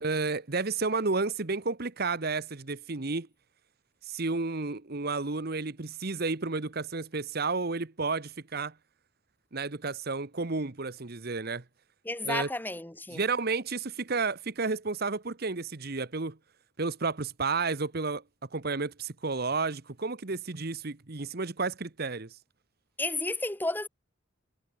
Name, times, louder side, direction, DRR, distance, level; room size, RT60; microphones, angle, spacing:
voice 1, 0.0-3.3 4.1-8.7 9.5-11.6 12.2-12.5 13.1-16.4 16.8-18.2 18.5-22.3, right 4 dB, 50° right, 1.1 m, -31 dB
voice 2, 12.0-13.2 23.0-23.9, left 2 dB, 10° left, 1.3 m, -32 dB
head